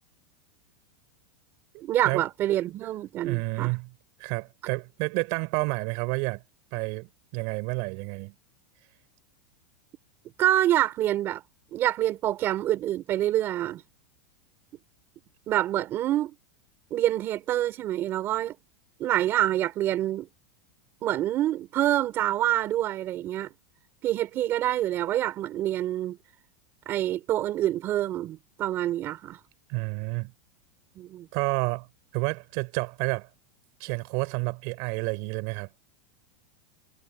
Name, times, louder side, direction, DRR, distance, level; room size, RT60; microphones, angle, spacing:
voice 1, 1.8-3.7 10.4-11.4 11.7-13.8 15.5-16.3 16.9-18.5 19.0-20.3 21.0-23.5 24.0-26.2 26.9-29.4 31.0-31.3, right 13 dB, 25° right, 4.8 m, -26 dB
voice 2, 3.2-3.9 4.2-6.4 6.7-8.3 29.7-30.3 31.3-31.9 32.1-33.3 33.8-35.7, right 30 dB, 45° right, 5.2 m, -30 dB
supercardioid pair, 165°, 8 cm